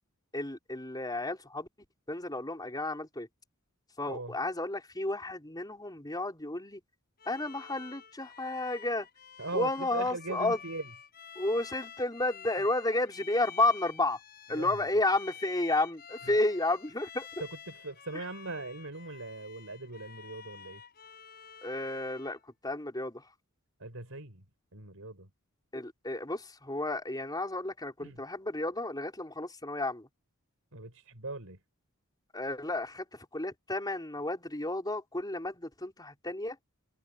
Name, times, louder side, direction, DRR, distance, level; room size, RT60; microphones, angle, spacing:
voice 1, 0.3-1.7 2.1-3.3 4.0-6.8 7.3-9.1 9.5-10.6 11.3-14.2 14.5-17.3 21.6-23.2 25.7-30.1 32.3-36.6, left 2 dB, 20° left, 4.8 m, -32 dB
Bowed string instrument, 7.2-22.4, left 7 dB, 45° left, 5.8 m, -50 dB
voice 2, 9.4-10.9 14.5-14.9 17.4-20.8 23.8-24.4 24.7-25.3 28.0-28.2 30.7-31.6, right 2 dB, 70° right, 5.1 m, -40 dB
head